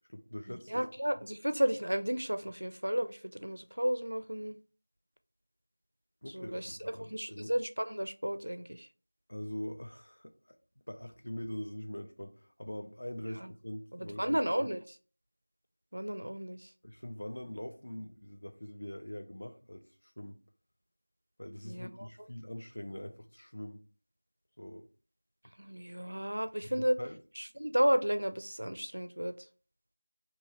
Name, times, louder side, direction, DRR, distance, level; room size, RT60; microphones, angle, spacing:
voice 1, 0.1-0.9 6.2-7.5 9.3-10.3 10.9-14.7 16.8-20.4 21.4-23.8 24.6-24.9 26.6-27.2, left 1 dB, 40° left, 0.4 m, -43 dB
voice 2, 0.7-4.5 6.3-8.7 14.2-14.8 15.9-16.6 21.7-21.9 25.6-27.0 27.6-29.3, equal, 75° right, 0.4 m, -32 dB
2.8 x 2.6 x 2.8 m
figure-of-eight pair, 180°, 0 cm